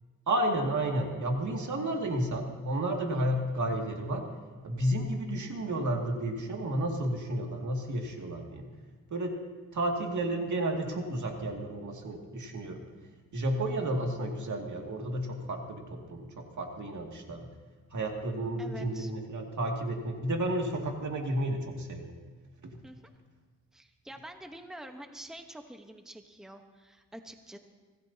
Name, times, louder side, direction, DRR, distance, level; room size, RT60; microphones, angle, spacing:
voice 1, 0.3-4.3 4.6-8.6 9.1-9.3 9.7-12.8 13.3-17.5 17.9-22.1 22.6-22.8, right 1 dB, 65° right, 1 dB, 2.4 m, -32 dB
voice 2, 18.6-19.1 22.8-23.0 23.7-27.6, right 1 dB, ahead, 5 dB, 1.1 m, -47 dB
25.0 x 17.5 x 2.9 m, 1.3 s
cardioid pair, 85°, 32 cm